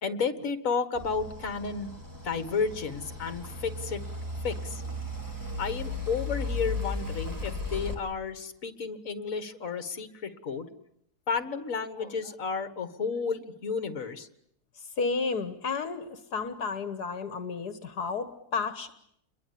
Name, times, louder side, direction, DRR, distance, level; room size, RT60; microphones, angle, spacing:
voice 1, 0.0-1.9 2.2-4.0 4.4-4.8 5.6-10.7 11.3-14.3, left 5 dB, 55° left, 10 dB, 2.1 m, -32 dB
sound 1, 0.9-7.9, left 2 dB, 10° right, 3.9 m, -36 dB
voice 2, 14.8-18.9, left 4 dB, 75° left, 9 dB, 1.9 m, -32 dB
28.5 x 22.5 x 8.5 m, 0.74 s
omnidirectional pair, 1.7 m